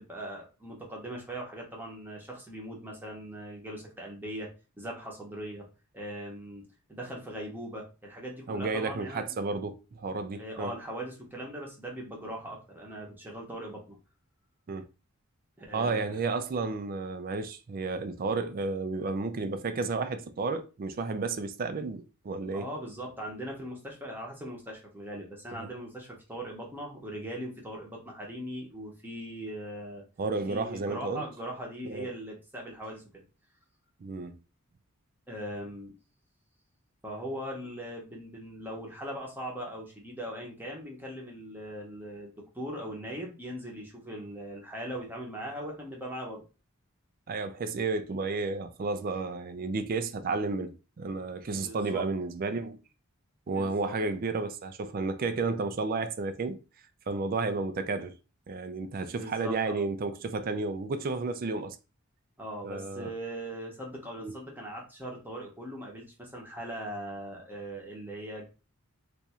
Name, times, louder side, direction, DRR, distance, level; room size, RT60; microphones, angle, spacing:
voice 1, 0.0-4.5 4.8-5.7 5.9-9.4 10.4-14.0 15.6-16.2 22.5-30.0 30.5-33.2 35.3-35.9 37.0-46.4 51.5-52.0 53.5-53.9 58.9-59.9 62.4-68.5, right 1 dB, 10° right, 0.8 m, -40 dB
voice 2, 8.5-10.7 14.7-14.9 15.7-22.7 25.5-25.7 30.2-31.2 31.8-32.1 34.0-34.4 47.3-52.8 53.5-56.6 57.1-58.2 58.5-61.8 62.6-63.1 64.2-64.3, right 3 dB, 40° right, 0.4 m, -32 dB
2.6 x 2.4 x 4.1 m
head